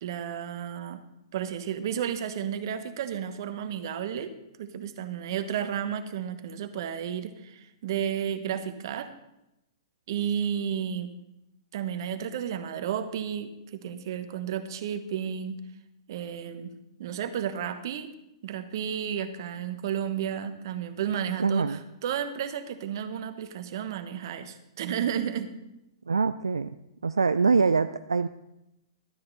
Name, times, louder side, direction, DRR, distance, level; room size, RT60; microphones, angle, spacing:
voice 1, 0.0-1.0 1.3-4.3 4.6-9.1 10.1-11.1 11.7-15.6 16.1-16.7 17.0-18.1 18.4-25.5, right 9 dB, 55° right, 9 dB, 1.1 m, -32 dB
voice 2, 21.4-21.8 26.1-26.7 27.0-28.3, right 4 dB, 90° right, 11 dB, 0.3 m, -24 dB
12.5 x 9.8 x 4.0 m, 0.89 s
hypercardioid pair, 115°, 3 cm